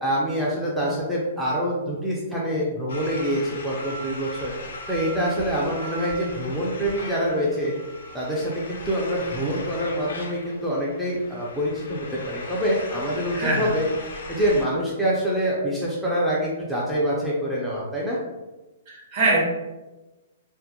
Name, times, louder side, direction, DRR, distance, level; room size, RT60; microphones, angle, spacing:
voice 1, 0.0-4.5 4.9-7.7 8.1-13.9 14.1-18.2, equal, ahead, -7 dB, 0.4 m, -25 dB
sound 1, 2.9-14.6, left 1 dB, 80° left, 0.5 m, -39 dB
voice 2, 13.3-13.7 18.9-19.4, right 2 dB, 40° right, -3 dB, 0.8 m, -23 dB
2.2 x 2.0 x 2.8 m, 1.1 s
hypercardioid pair, 135°, 0 cm